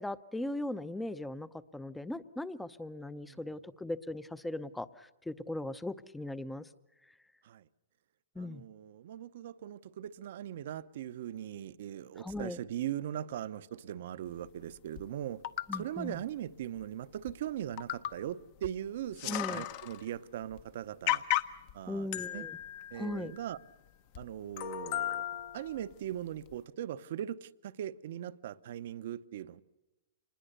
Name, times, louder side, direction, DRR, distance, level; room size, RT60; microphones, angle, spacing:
voice 1, 0.0-6.7 8.4-8.6 12.2-12.6 15.7-16.2 19.3-19.6 21.9-22.6 22.9-23.3, left 1 dB, 5° left, 0.7 m, -39 dB
voice 2, 8.4-15.4 15.7-21.2 21.7-22.5 22.9-23.6 24.2-25.2 25.5-29.6, right 11 dB, 60° right, 0.8 m, -40 dB
sound 1, 15.0-15.1 15.4-15.8 16.8-16.9 17.3-17.4 17.8-18.3 18.6-18.7 19.0-20.1 20.5-20.6 21.1-21.7 22.1-23.7 24.2-24.3 24.6-25.9 26.5-26.6, left 13 dB, 45° left, 0.9 m, -35 dB
25.5 x 20.5 x 6.7 m
hypercardioid pair, 150°, 0 cm